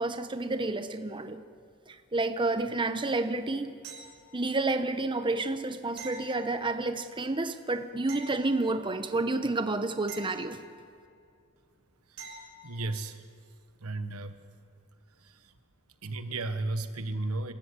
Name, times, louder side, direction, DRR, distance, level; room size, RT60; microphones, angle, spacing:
voice 1, 0.0-1.4 1.9-3.7 4.3-10.6, right 2 dB, 20° right, 9 dB, 0.9 m, -30 dB
sound 1, 3.8-4.6 6.0-7.0 8.1-9.1 10.1-11.1 12.2-12.8 15.5-15.6, right 3 dB, 70° right, 5.7 m, -47 dB
voice 2, 12.6-13.2 13.8-14.4 15.2-15.5 16.0-17.5, right 2 dB, 90° right, 9 dB, 1.3 m, -34 dB
28.5 x 13.5 x 8.2 m, 2.3 s
head